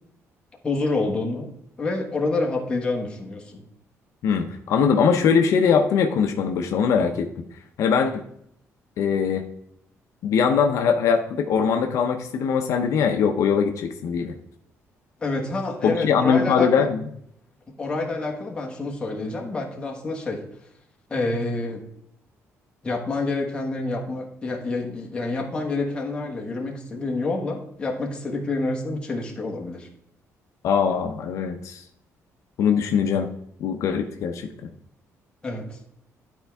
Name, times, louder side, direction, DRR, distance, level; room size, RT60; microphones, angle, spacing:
voice 1, 0.6-1.5 1.8-3.6 15.2-16.9 17.8-20.4 21.1-21.8 22.8-29.9 35.4-35.8, left 3 dB, 15° left, 0 dB, 1.3 m, -27 dB
voice 2, 4.2-7.3 7.8-8.2 9.0-9.5 10.2-14.3 15.8-17.0 30.6-31.8 32.6-33.3 33.6-34.5, left 6 dB, 65° left, 5 dB, 0.7 m, -21 dB
11.5 x 4.5 x 3.5 m, 0.73 s
cardioid pair, 155°, 6 cm